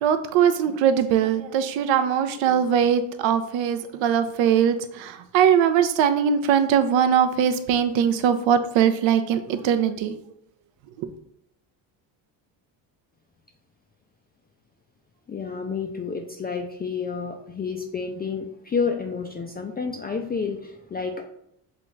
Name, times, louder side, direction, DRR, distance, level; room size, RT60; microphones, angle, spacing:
voice 1, 0.0-10.1, right 8 dB, 65° right, 11 dB, 0.6 m, -21 dB
voice 2, 15.3-21.2, left 5 dB, 20° left, 3 dB, 0.3 m, -30 dB
5.7 x 2.5 x 3.1 m, 0.76 s
supercardioid pair, 70°, 49 cm